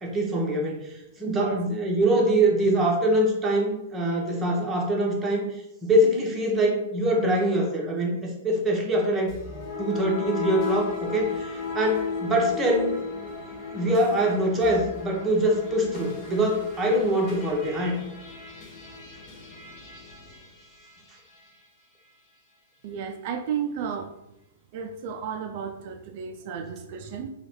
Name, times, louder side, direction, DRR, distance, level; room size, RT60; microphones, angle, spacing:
voice 1, 0.0-9.3 9.8-12.9 13.7-18.0, right 1 dB, 15° right, -1 dB, 0.9 m, -24 dB
voice 2, 1.2-1.6 22.8-24.1 24.7-27.3, right 7 dB, 45° right, 6 dB, 0.4 m, -33 dB
sound 1, 9.3-21.6, left 4 dB, 30° left, 1.0 m, -35 dB
3.1 x 2.4 x 4.2 m, 0.85 s
figure-of-eight pair, 105°, 0 cm